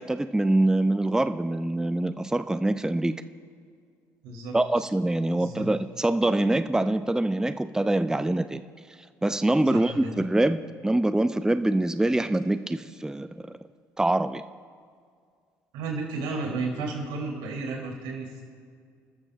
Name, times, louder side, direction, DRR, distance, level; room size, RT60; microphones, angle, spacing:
voice 1, 0.0-3.1 4.5-8.6 9.2-13.5 14.0-14.4, right 1 dB, 5° right, 12 dB, 0.5 m, -24 dB
voice 2, 4.2-4.6 5.4-5.7 9.7-10.1 15.7-18.4, right 3 dB, 75° right, -1 dB, 3.3 m, -33 dB
29.5 x 13.5 x 2.5 m, 2.1 s
hypercardioid pair, 55°, 8 cm